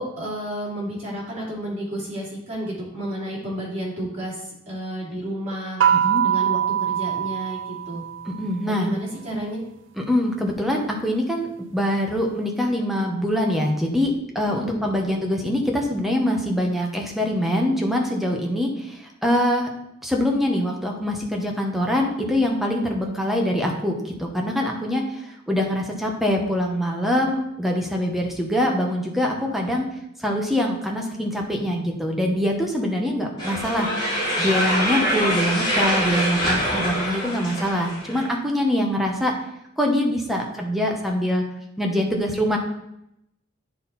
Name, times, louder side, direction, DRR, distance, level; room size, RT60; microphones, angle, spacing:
voice 1, 0.0-5.8 6.2-8.0 8.7-9.6 14.5-14.9 33.3-33.6 40.5-40.6, right 1 dB, 35° right, -6 dB, 2.8 m, -31 dB
sound 1, 5.8-8.5, right 9 dB, 70° right, 0.5 m, -23 dB
voice 2, 5.9-6.2 8.3-8.9 10.0-19.7 20.0-29.8 30.2-33.9 34.4-39.3 39.8-41.4 41.8-42.6, left 1 dB, ahead, 0 dB, 1.0 m, -24 dB
sound 2, 33.4-38.3, equal, 20° left, 2.6 m, -24 dB
9.3 x 4.3 x 4.1 m, 0.81 s
head